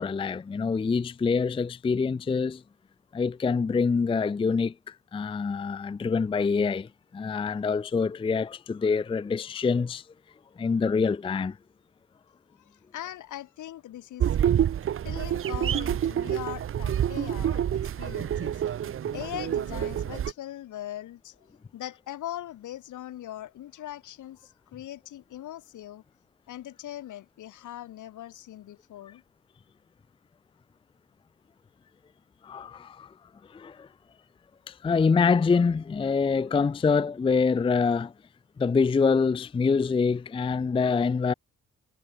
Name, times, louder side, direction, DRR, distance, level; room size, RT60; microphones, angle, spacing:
voice 1, 0.0-2.6 3.1-10.0 10.6-11.6 32.4-33.1 33.5-33.9 34.7-38.1 38.6-41.3, left 5 dB, 20° left, 0.4 m, -25 dB
voice 2, 12.5-14.4 15.0-18.8 19.1-21.5 21.7-26.0 26.5-29.2, left 13 dB, 80° left, 6.3 m, -40 dB
sound 1, 14.2-20.3, right 10 dB, 45° right, 0.7 m, -27 dB
cardioid pair, 90°, 30 cm